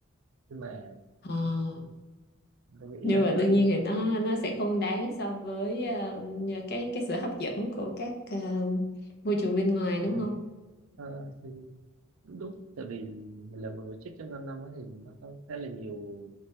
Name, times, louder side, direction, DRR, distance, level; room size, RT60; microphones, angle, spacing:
voice 1, 0.5-1.0 1.4-1.9 2.7-3.7 10.1-10.3 11.0-11.8 12.2-16.3, right 3 dB, 85° right, 8 dB, 0.5 m, -41 dB
voice 2, 1.2-1.8 3.0-8.9 9.2-10.4, left 1 dB, 55° left, 2 dB, 0.8 m, -28 dB
3.4 x 3.2 x 4.2 m, 1.2 s
head